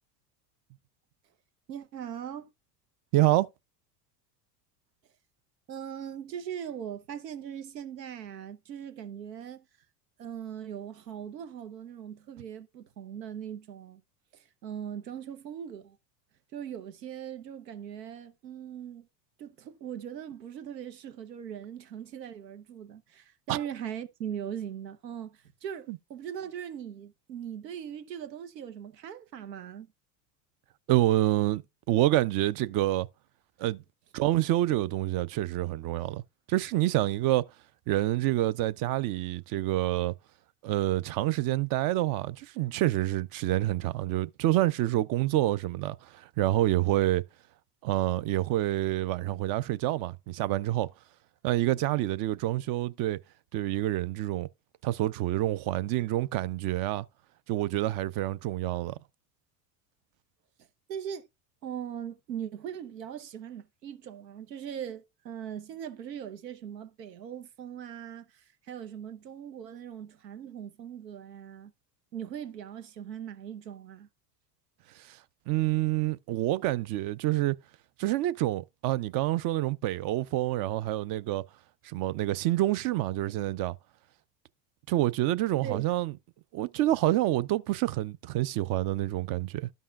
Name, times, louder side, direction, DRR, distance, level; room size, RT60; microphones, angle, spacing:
voice 1, 1.7-2.5 5.7-9.6 10.2-14.0 14.3-16.0 16.5-19.1 19.4-29.9 60.9-61.3 61.6-71.7 72.1-74.1 85.6-85.9, right 9 dB, 90° right, 0.9 m, -40 dB
voice 2, 3.1-3.5 23.5-23.6 25.9-26.0 30.9-31.6 31.9-33.1 33.6-33.8 34.1-36.2 36.5-37.4 37.9-40.1 40.6-47.2 47.8-50.9 51.4-53.2 53.5-54.5 54.8-57.1 57.5-58.9 75.0-75.2 75.5-77.6 78.0-81.4 81.8-83.8 84.9-86.1 86.5-89.7, right 15 dB, 45° right, 0.6 m, -27 dB
13.0 x 5.5 x 2.4 m
hypercardioid pair, 85°, 48 cm